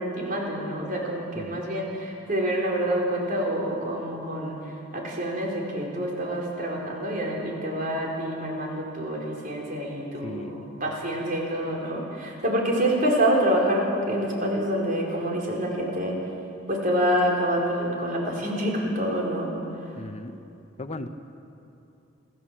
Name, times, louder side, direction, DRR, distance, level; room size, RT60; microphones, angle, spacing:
voice 1, 0.0-4.6 4.9-16.2 16.7-19.5, right 1 dB, 45° right, -2 dB, 4.5 m, -27 dB
voice 2, 1.3-1.7 10.2-10.6 20.0-20.4 20.8-21.1, left 2 dB, 35° left, 9 dB, 0.8 m, -37 dB
27.0 x 14.0 x 7.6 m, 2.7 s
head